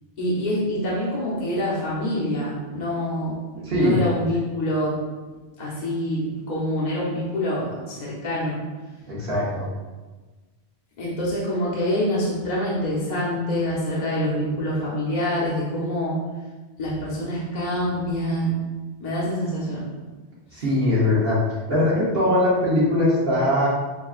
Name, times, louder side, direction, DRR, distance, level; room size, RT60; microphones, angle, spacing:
voice 1, 0.2-3.4 3.7-5.0 5.6-8.6 11.0-16.2 16.8-18.6 19.0-19.9 20.5-20.6, equal, 45° left, -6 dB, 0.9 m, -26 dB
voice 2, 3.6-4.0 9.1-9.6 20.5-21.4 21.7-23.7, left 1 dB, 65° right, -7 dB, 1.2 m, -21 dB
6.2 x 2.3 x 2.4 m, 1.3 s
omnidirectional pair, 1.1 m